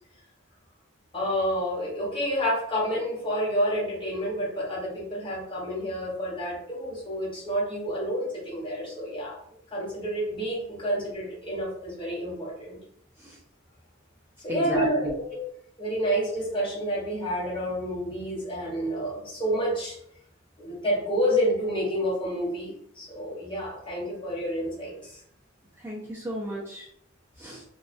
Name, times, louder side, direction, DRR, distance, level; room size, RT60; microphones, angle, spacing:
voice 1, 1.1-9.4 9.7-12.8 14.4-15.4 15.8-20.0 20.6-25.2, equal, 25° left, -5 dB, 0.9 m, -29 dB
voice 2, 14.5-15.1 25.8-26.9 27.4-27.6, right 1 dB, 10° right, -6 dB, 0.3 m, -33 dB
2.3 x 2.2 x 2.4 m, 0.70 s
head